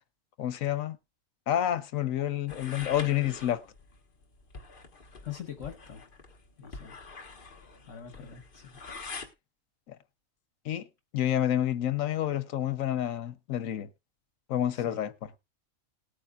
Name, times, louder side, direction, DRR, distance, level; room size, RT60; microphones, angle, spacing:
voice 1, 0.4-1.0 1.5-3.6 9.9-10.0 10.6-10.9 11.1-13.9 14.5-15.1, left 11 dB, 85° left, 1.2 m, -29 dB
sound 1, 2.5-9.3, left 4 dB, 45° left, 1.5 m, -45 dB
voice 2, 5.2-6.0 6.6-7.0 7.8-8.8 14.7-15.1, left 9 dB, 70° left, 1.6 m, -43 dB
19.0 x 8.8 x 2.4 m
omnidirectional pair, 1.4 m